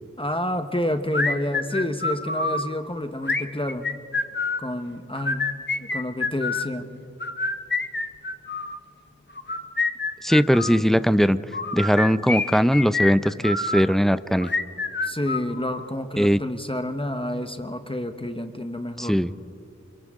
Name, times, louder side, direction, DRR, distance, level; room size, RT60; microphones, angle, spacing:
voice 1, 0.2-3.9 4.6-5.5 5.9-6.9 15.0-19.2, left 1 dB, 20° left, 7 dB, 1.2 m, -29 dB
sound 1, 1.1-2.6 3.2-4.7 5.1-6.7 7.2-8.8 9.4-10.8 11.5-13.8 14.4-15.9, left 3 dB, 40° left, 0.9 m, -27 dB
voice 2, 10.2-11.4 11.7-14.5 16.2-16.4 19.0-19.3, equal, ahead, 13 dB, 0.6 m, -20 dB
30.0 x 26.5 x 3.7 m, 2.4 s
wide cardioid pair, 50°, 29 cm